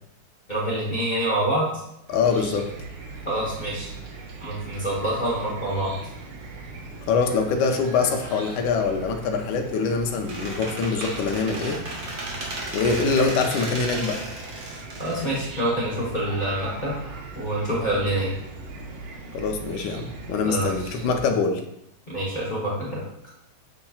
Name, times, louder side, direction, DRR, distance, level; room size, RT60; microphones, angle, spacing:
voice 1, 0.5-1.8 3.2-3.9 4.4-5.9 15.0-16.9 17.3-18.3 20.4-20.7 22.1-23.0, right 1 dB, 40° left, -6 dB, 0.6 m, -26 dB
voice 2, 2.1-2.7 7.1-11.8 12.7-14.2 19.3-21.6, left 5 dB, 75° left, 4 dB, 1.4 m, -24 dB
Chicken rooster / Cricket, 2.1-21.2, right 3 dB, 80° right, 1.5 m, -39 dB
Squeak, 10.3-16.1, right 2 dB, 55° right, 1.3 m, -34 dB
7.1 x 2.8 x 2.3 m, 0.78 s
omnidirectional pair, 2.3 m